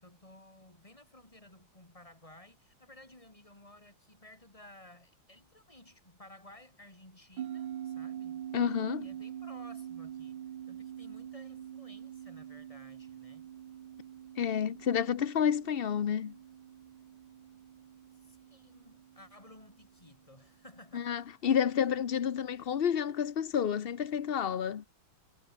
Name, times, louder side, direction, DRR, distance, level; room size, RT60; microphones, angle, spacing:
voice 1, 0.0-8.6 9.0-13.5 18.2-21.2 21.4-21.5, left 1 dB, 15° left, 4.3 m, -56 dB
sound 1, 7.4-20.1, right 10 dB, 85° right, 2.0 m, -45 dB
voice 2, 8.5-9.1 14.4-16.3 20.9-24.8, left 8 dB, 60° left, 0.6 m, -30 dB
omnidirectional pair, 2.1 m